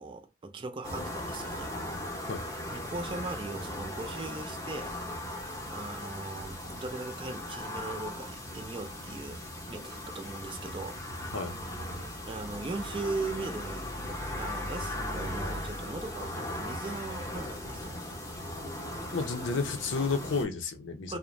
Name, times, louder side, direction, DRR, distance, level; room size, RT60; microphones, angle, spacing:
voice 1, 0.0-1.7 2.7-5.0 5.7-11.0 12.3-18.0 20.4-20.5 21.1-21.2, right 3 dB, 25° right, 0.4 m, -39 dB
sound 1, 0.8-20.4, left 1 dB, 15° left, 0.7 m, -38 dB
voice 2, 19.1-21.2, left 4 dB, 70° left, 0.6 m, -31 dB
2.4 x 2.1 x 3.0 m
head